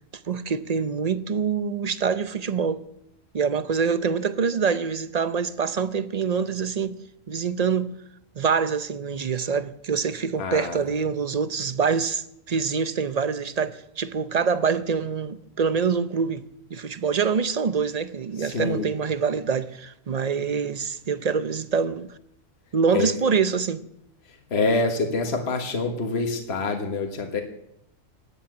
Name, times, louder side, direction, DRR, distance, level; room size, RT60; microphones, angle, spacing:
voice 1, 0.3-2.9 3.3-7.0 7.3-7.9 8.4-16.4 16.7-22.1 22.7-23.8, right 6 dB, 40° right, 0.6 m, -25 dB
voice 2, 10.4-10.8 18.4-18.9 22.9-23.1 24.3-27.4, left 3 dB, 50° left, 1.7 m, -26 dB
17.0 x 8.7 x 9.0 m
omnidirectional pair, 1.4 m